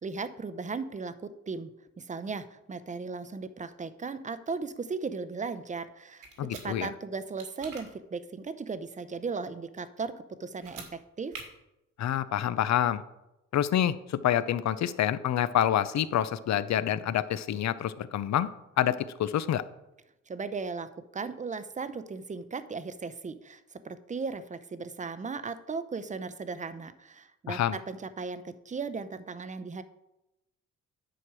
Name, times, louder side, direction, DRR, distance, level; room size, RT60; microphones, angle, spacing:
voice 1, 0.0-1.7 2.0-11.4 20.3-29.8, right 4 dB, 25° right, 13 dB, 0.6 m, -37 dB
sound 1, 6.2-6.7 7.4-7.8 10.5-10.9 11.3-11.4, right 5 dB, 90° right, 2.1 m, -43 dB
voice 2, 6.4-6.9 12.0-13.0 13.5-18.5 18.8-19.6 27.5-27.8, left 11 dB, 60° left, 15 dB, 0.6 m, -27 dB
10.5 x 6.1 x 4.8 m, 0.92 s
cardioid pair, 110°, 31 cm